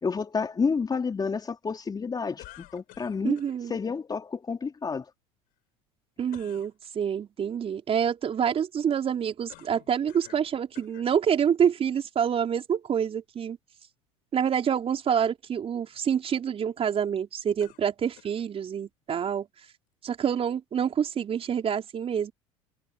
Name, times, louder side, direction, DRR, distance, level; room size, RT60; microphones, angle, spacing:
voice 1, 0.0-3.4 3.7-5.0, left 5 dB, 25° left, 4.0 m, -30 dB
sound 1, 2.4-3.6 6.3-6.7 9.5-10.5 10.7-11.1 11.9-12.0 17.6-18.5, left 19 dB, 60° left, 7.4 m, -51 dB
voice 2, 3.2-3.7 6.2-13.6 14.3-19.5 20.0-22.3, right 8 dB, 35° right, 5.0 m, -27 dB
hypercardioid pair, 80°, 16 cm